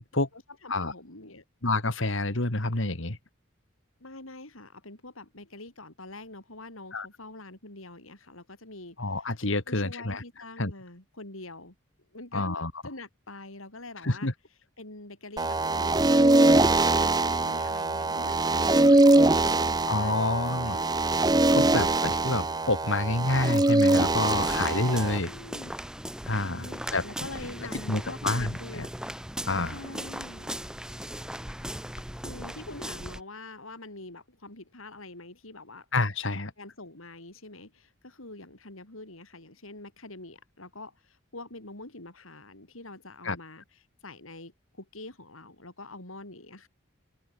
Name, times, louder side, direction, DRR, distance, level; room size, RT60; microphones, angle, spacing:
voice 1, 0.3-1.4 4.0-9.0 9.7-11.8 12.1-12.6 12.8-14.3 14.8-16.7 17.0-21.0 24.5-25.7 26.4-28.9 29.7-30.6 32.2-35.9 36.6-43.6 44.0-46.7, left 2 dB, 85° left, 5.8 m, -45 dB
voice 2, 1.6-3.2 6.9-7.1 9.0-10.2 10.6-10.7 12.3-12.7 14.0-14.3 19.9-20.8 21.5-25.3 26.3-27.0 27.9-28.9 29.5-29.8 35.9-36.5 43.2-43.4, left 2 dB, 70° left, 2.5 m, -28 dB
sound 1, 15.4-25.2, right 2 dB, 20° right, 0.7 m, -23 dB
sound 2, 24.2-33.2, right 1 dB, 5° right, 3.2 m, -38 dB
open air
head